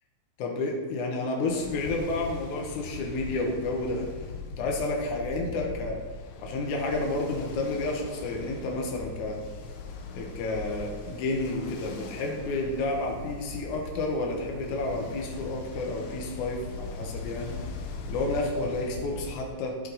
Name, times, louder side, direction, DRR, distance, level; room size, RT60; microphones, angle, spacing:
voice 1, 0.4-4.1 4.6-6.0 6.4-9.4 10.1-17.6 18.1-19.8, left 2 dB, 85° left, 0 dB, 2.5 m, -30 dB
Ocean, 1.5-19.4, left 4 dB, 70° left, 1.7 m, -40 dB
14.0 x 4.7 x 3.9 m, 1.5 s
omnidirectional pair, 3.3 m